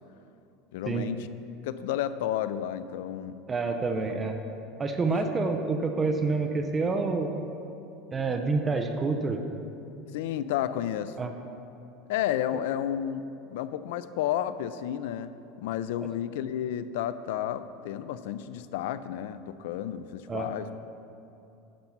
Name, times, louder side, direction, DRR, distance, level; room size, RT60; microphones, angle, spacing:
voice 1, 0.7-1.3 1.6-3.4 5.1-5.3 10.1-11.1 12.1-15.3 15.6-20.9, left 11 dB, 70° left, 13 dB, 0.4 m, -32 dB
voice 2, 3.5-4.3 4.8-7.3 8.1-9.4 11.2-11.3 20.3-20.5, right 3 dB, 15° right, 5 dB, 0.4 m, -28 dB
10.5 x 5.4 x 5.9 m, 2.8 s
supercardioid pair, 170°, 0 cm